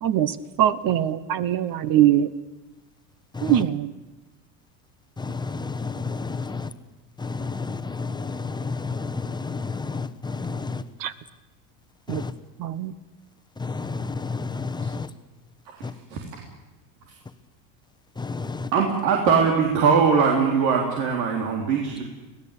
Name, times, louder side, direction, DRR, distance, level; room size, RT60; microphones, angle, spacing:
voice 1, 0.0-2.3 3.4-3.9 11.0-11.1 12.1-12.2 12.6-12.9, right 11 dB, 40° right, 15 dB, 1.2 m, -22 dB
voice 2, 3.3-3.6 5.2-6.7 7.2-10.8 12.1-12.3 13.6-15.1 15.8-15.9 18.2-18.7, left 4 dB, 10° left, 9 dB, 1.1 m, -31 dB
voice 3, 18.7-22.0, right 6 dB, 90° right, 0 dB, 4.0 m, -21 dB
25.5 x 18.0 x 8.6 m, 1.1 s
supercardioid pair, 120°, 50 cm